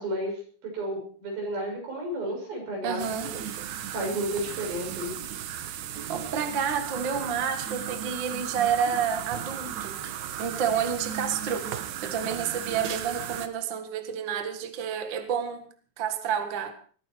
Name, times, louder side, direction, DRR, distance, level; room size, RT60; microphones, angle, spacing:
voice 1, 0.0-3.1 3.9-5.1, right 1 dB, 85° right, 0 dB, 8.3 m, -32 dB
voice 2, 2.8-3.4 5.2-5.3 6.1-10.0 10.4-11.7 12.0-15.7 16.0-16.7, right 7 dB, 40° right, 7 dB, 1.9 m, -29 dB
sound 1, 3.0-13.5, right 10 dB, 65° right, 2.1 m, -35 dB
20.5 x 14.5 x 4.6 m, 0.43 s
omnidirectional pair, 4.1 m